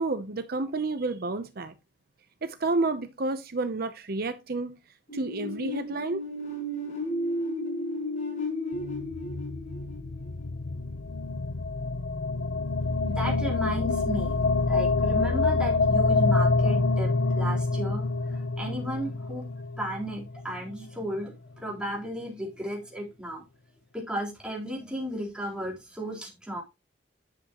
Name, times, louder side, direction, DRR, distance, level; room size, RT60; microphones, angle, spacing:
voice 1, 0.0-1.7 2.4-4.7 5.1-6.2, right 3 dB, 55° right, 0.8 m, -30 dB
sound 1, 5.1-10.8, left 1 dB, 40° left, 5.6 m, -33 dB
sound 2, 8.7-21.0, left 3 dB, 80° left, 0.8 m, -27 dB
voice 2, 12.8-19.4 19.8-23.4 23.9-26.6, right 1 dB, 5° right, 3.9 m, -34 dB
10.5 x 8.1 x 3.0 m
head